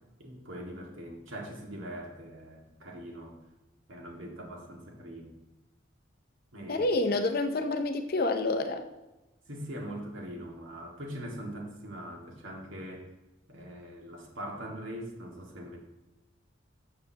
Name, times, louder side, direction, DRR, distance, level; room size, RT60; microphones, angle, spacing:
voice 1, 0.2-3.4 3.9-5.4 6.5-6.8 9.5-13.1 13.5-15.8, equal, 80° right, 0 dB, 1.9 m, -42 dB
voice 2, 6.7-8.9, left 2 dB, 50° left, 7 dB, 0.6 m, -28 dB
13.5 x 6.8 x 2.9 m, 1.0 s
head